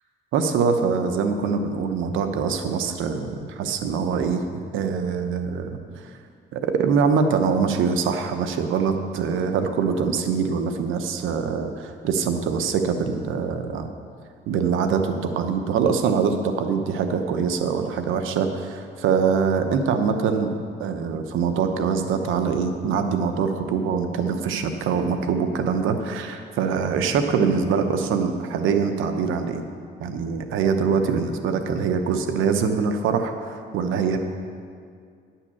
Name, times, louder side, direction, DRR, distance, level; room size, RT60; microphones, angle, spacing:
voice 1, 0.3-4.4 4.7-6.1 6.5-13.9 14.5-20.5 20.8-29.6 30.0-34.2, right 6 dB, 85° right, 6 dB, 0.9 m, -24 dB
10.5 x 5.7 x 7.0 m, 2.2 s
cardioid pair, 90°, 20 cm